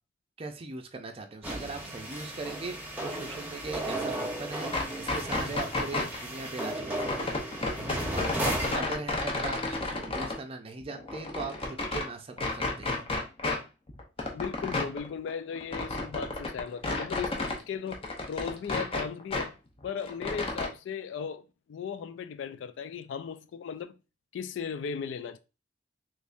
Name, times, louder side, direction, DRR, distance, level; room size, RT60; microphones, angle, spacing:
voice 1, 0.4-7.5 8.1-8.3 8.7-13.0, right 3 dB, 30° right, 0.5 m, -40 dB
sound 1, 1.4-8.8, right 1 dB, 10° right, 0.9 m, -35 dB
sound 2, 4.6-6.2 6.9-10.4 10.8-12.1 12.4-13.6 13.9-17.6 17.9-19.5 19.8-20.7, left 2 dB, 30° left, 0.7 m, -32 dB
voice 2, 14.3-17.3 17.7-19.5 19.8-24.0 24.3-25.4, left 6 dB, 85° left, 0.3 m, -37 dB
3.4 x 3.2 x 2.5 m
head